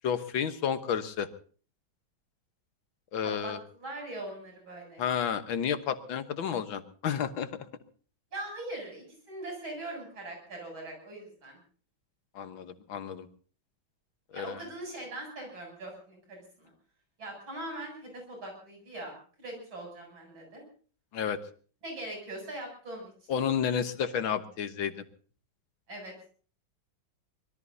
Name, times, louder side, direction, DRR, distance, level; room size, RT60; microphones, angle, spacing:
voice 1, 0.0-1.3 3.1-3.6 5.0-7.5 12.4-13.3 14.3-14.6 21.1-21.4 23.3-24.9, left 8 dB, 80° left, 9 dB, 2.0 m, -31 dB
voice 2, 3.2-5.0 8.3-11.6 14.3-16.7 17.2-20.6 21.8-23.1 25.9-26.3, right 1 dB, 85° right, 1 dB, 8.7 m, -41 dB
25.0 x 21.0 x 2.8 m, 0.42 s
omnidirectional pair, 2.1 m